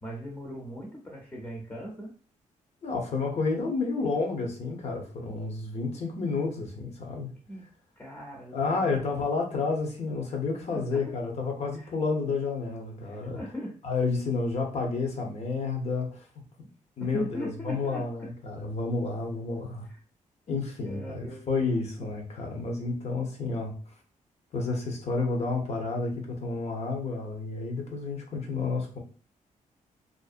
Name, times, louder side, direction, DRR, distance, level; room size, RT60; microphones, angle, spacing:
voice 1, 0.0-2.1 7.5-7.6 8.0-8.9 10.7-11.2 11.7-11.9 13.0-13.7 17.0-18.3 19.8-20.0 20.8-21.6, equal, 10° left, -2 dB, 0.6 m, -39 dB
voice 2, 2.8-7.3 8.5-13.4 13.8-16.3 17.0-19.9 20.5-23.7 24.5-29.0, left 3 dB, 55° left, 2 dB, 0.7 m, -30 dB
2.5 x 2.0 x 2.4 m, 0.39 s
cardioid pair, 115°, 14 cm